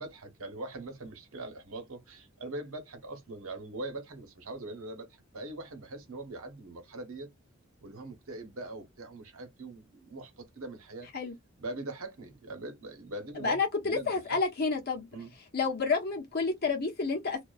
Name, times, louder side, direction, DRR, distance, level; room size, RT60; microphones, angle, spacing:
voice 1, 0.0-7.3 7.8-11.1 11.6-14.4 15.1-15.3, right 2 dB, 80° right, 1.0 m, -42 dB
voice 2, 13.4-15.1 15.5-17.4, left 4 dB, 45° left, 1.0 m, -29 dB
2.4 x 2.3 x 2.4 m
head